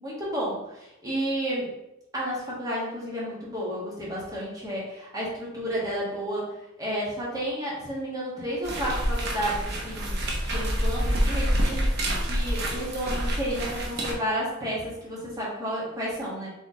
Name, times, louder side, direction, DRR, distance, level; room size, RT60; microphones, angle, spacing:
voice 1, 0.0-1.7 2.1-6.5 6.8-10.2 10.5-16.5, equal, 20° right, -6 dB, 1.4 m, -31 dB
sound 1, 8.6-14.1, equal, 55° right, 0.9 m, -27 dB
4.2 x 3.5 x 3.6 m, 0.87 s
head